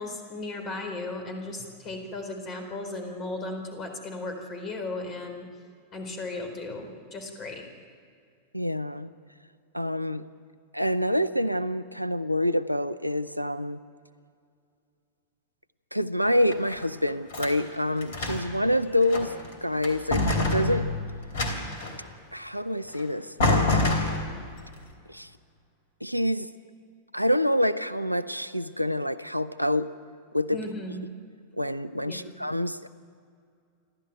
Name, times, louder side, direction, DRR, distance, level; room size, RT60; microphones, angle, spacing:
voice 1, 0.0-5.5 5.9-7.6 30.5-31.0 32.0-32.4, left 2 dB, 30° left, 5 dB, 4.2 m, -36 dB
voice 2, 8.5-9.1 9.7-10.2 10.7-13.8 15.9-19.3 19.6-20.9 22.3-23.8 25.1-25.3 26.0-26.5 27.1-29.9 30.3-30.6 31.6-32.9, left 1 dB, 90° right, 14 dB, 0.6 m, -27 dB
sound 1, 16.3-17.6 18.0-18.6 19.0-19.5 19.8-22.0 22.9-23.0 23.4-24.6, left 2 dB, 60° left, 3.2 m, -27 dB
28.5 x 12.5 x 9.2 m, 2.3 s
figure-of-eight pair, 90°, 0 cm